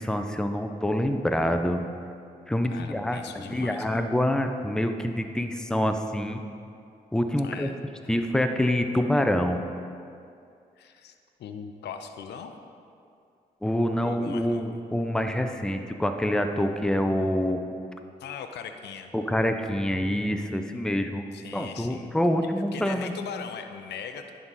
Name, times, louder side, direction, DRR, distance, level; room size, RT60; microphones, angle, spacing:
voice 1, 0.0-1.8 2.5-6.4 7.1-7.7 8.1-9.6 13.6-17.6 19.1-21.2 21.5-23.1, left 1 dB, 5° left, 6 dB, 0.6 m, -26 dB
voice 2, 2.6-4.0 7.4-7.7 10.8-12.6 14.0-14.8 18.2-19.1 21.3-22.1 22.7-24.3, left 7 dB, 75° left, 7 dB, 0.5 m, -40 dB
10.5 x 3.7 x 4.1 m, 2.4 s
supercardioid pair, 45°, 18 cm